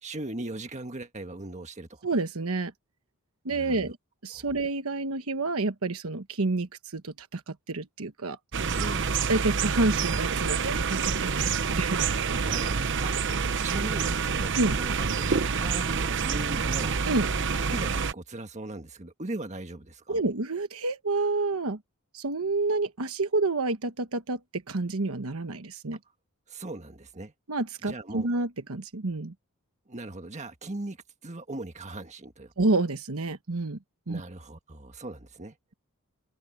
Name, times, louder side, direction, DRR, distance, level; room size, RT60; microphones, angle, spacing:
voice 1, 0.0-2.0 3.5-3.9 4.3-4.5 8.7-9.2 12.3-17.0 17.7-20.2 26.5-27.3 27.8-28.3 29.9-31.0 31.2-32.5 34.1-35.6, right 2 dB, 30° right, 1.6 m, -39 dB
voice 2, 2.0-2.7 3.4-4.0 4.2-8.4 9.3-11.5 11.8-12.4 14.5-14.8 17.1-17.3 20.1-21.8 22.1-26.0 27.5-29.3 32.6-33.8 34.1-34.2, right 2 dB, 70° right, 1.2 m, -29 dB
sound 1, 8.5-18.1, right 5 dB, 55° right, 0.9 m, -27 dB
open air
head